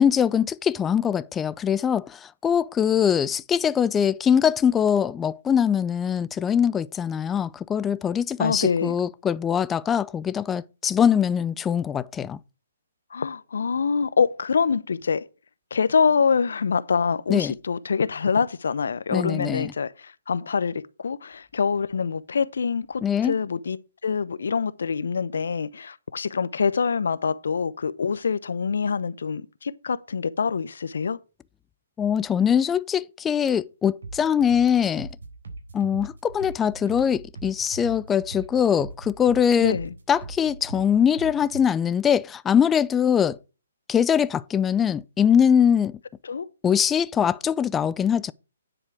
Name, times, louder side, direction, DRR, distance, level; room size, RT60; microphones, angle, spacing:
voice 1, 0.0-12.4 17.3-17.5 19.1-19.7 23.0-23.4 32.0-35.1 35.7-39.8 40.1-43.4 43.9-45.9 46.6-48.3, left 8 dB, 10° left, 0.4 m, -22 dB
voice 2, 8.4-9.0 13.1-15.2 15.7-31.2 39.6-39.9 46.2-46.5, left 5 dB, 75° left, 0.8 m, -25 dB
sound 1, 34.0-41.6, right 3 dB, 80° right, 4.0 m, -40 dB
9.9 x 4.8 x 6.0 m
hypercardioid pair, 155°, 0 cm